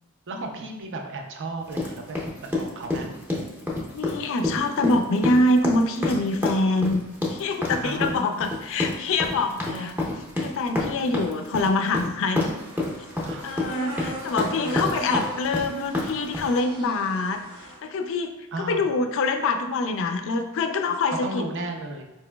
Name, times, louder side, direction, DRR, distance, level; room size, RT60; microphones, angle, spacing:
voice 1, 0.3-2.2 2.6-3.1 7.8-8.3 9.6-9.9 13.2-13.5 14.4-14.9 18.5-18.9 21.2-22.0, right 2 dB, 60° right, 3 dB, 0.5 m, -34 dB
sound 1, 1.7-16.6, left 2 dB, 10° right, 0.6 m, -28 dB
voice 2, 3.9-7.0 7.3-12.5 13.4-18.3 18.6-21.5, left 2 dB, 60° left, 7 dB, 0.4 m, -25 dB
sound 2, 12.5-17.8, right 1 dB, 85° right, 0.9 m, -38 dB
4.4 x 2.9 x 2.2 m, 0.98 s
head